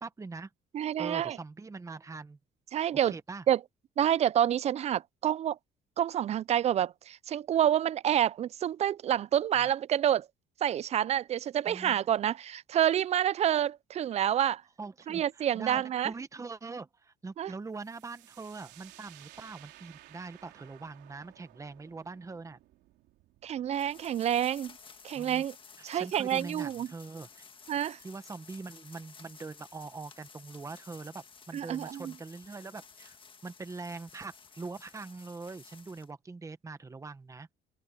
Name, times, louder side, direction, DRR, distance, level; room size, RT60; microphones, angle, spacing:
voice 1, 0.0-0.5 1.0-2.4 3.0-3.4 9.5-9.7 11.7-12.0 14.8-22.6 25.1-25.4 25.8-27.4 28.0-33.2 33.4-37.5, right 3 dB, 20° right, 1.1 m, -43 dB
voice 2, 0.7-1.4 2.7-3.1 3.5-3.6 4.0-5.6 6.0-10.3 10.6-14.6 15.1-16.1 17.4-17.5 23.4-24.7 25.0-25.5 25.8-26.9 27.7-28.0 31.5-32.1, right 10 dB, 40° right, 0.4 m, -28 dB
sound 1, 17.7-25.3, right 16 dB, 85° right, 3.6 m, -57 dB
sound 2, 23.7-36.1, left 5 dB, 30° left, 1.7 m, -54 dB
open air
cardioid pair, 110°, 17 cm